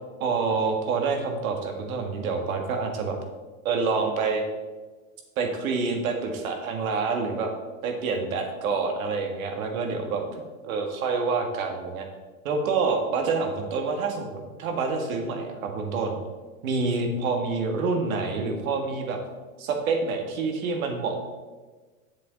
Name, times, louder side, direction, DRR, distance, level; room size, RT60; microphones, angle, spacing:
voice 1, 0.2-3.2 3.7-4.4 5.4-7.5 7.8-10.2 10.6-12.1 12.4-16.2 16.6-19.2 19.6-21.2, right 4 dB, 75° right, 3 dB, 1.8 m, -27 dB
7.3 x 7.3 x 3.9 m, 1.3 s
supercardioid pair, 135°, 41 cm